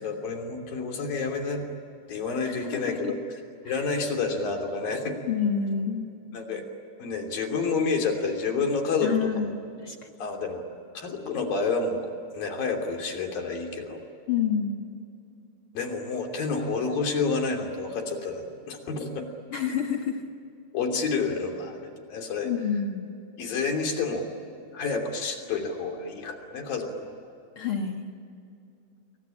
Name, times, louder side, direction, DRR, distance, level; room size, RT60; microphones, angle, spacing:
voice 1, 0.0-1.6 2.1-3.2 3.7-5.2 6.3-6.6 7.0-9.3 10.2-10.6 10.9-12.0 12.3-14.0 15.7-19.3 20.7-22.5 23.4-24.3 24.7-27.1, left 4 dB, 65° left, 4 dB, 4.7 m, -29 dB
voice 2, 2.4-3.1 3.7-3.8 5.2-6.1 9.0-10.1 14.3-14.9 19.5-20.2 22.4-23.1 27.6-28.1, left 7 dB, 45° left, 3 dB, 1.9 m, -28 dB
28.0 x 23.5 x 9.0 m, 2.5 s
omnidirectional pair, 4.5 m